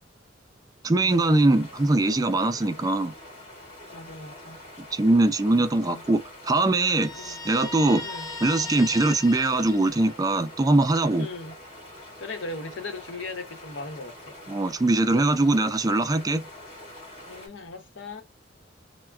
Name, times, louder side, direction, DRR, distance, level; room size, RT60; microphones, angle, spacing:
voice 1, 0.8-3.1 4.9-8.0 8.4-11.3 14.5-16.4, right 2 dB, 20° right, 0.3 m, -22 dB
sound 1, 1.1-17.5, left 1 dB, 35° left, 1.9 m, -45 dB
voice 2, 3.9-4.6 5.4-6.0 7.1-7.4 7.9-8.3 11.2-11.5 12.2-14.4 17.3-18.2, left 3 dB, 85° left, 0.9 m, -38 dB
Guitar, 7.0-10.6, left 2 dB, 20° left, 0.6 m, -38 dB
3.4 x 2.1 x 2.3 m
head